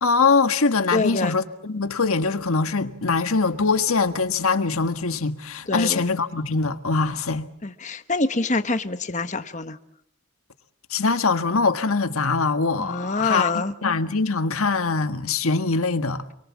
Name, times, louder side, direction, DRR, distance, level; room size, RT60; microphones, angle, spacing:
voice 1, 0.0-7.5 10.9-16.2, left 4 dB, 80° left, 1.5 m, -23 dB
voice 2, 0.9-1.4 5.7-6.1 7.6-9.8 12.8-13.7, left 3 dB, 35° left, 1.1 m, -25 dB
28.0 x 23.5 x 7.4 m
head